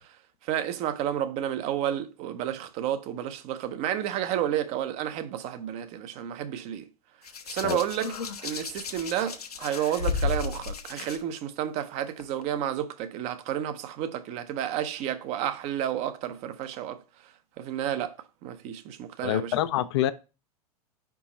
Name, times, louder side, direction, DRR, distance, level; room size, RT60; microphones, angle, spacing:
voice 1, 0.4-6.9 7.5-8.1 8.4-17.0 17.6-18.2 18.4-19.5, right 10 dB, 35° right, 0.6 m, -31 dB
Hands, 7.2-11.2 12.2-12.4, left 5 dB, 75° left, 0.7 m, -33 dB
voice 2, 19.2-20.1, left 13 dB, 45° left, 0.4 m, -26 dB
5.0 x 4.6 x 4.0 m
figure-of-eight pair, 95°, 20 cm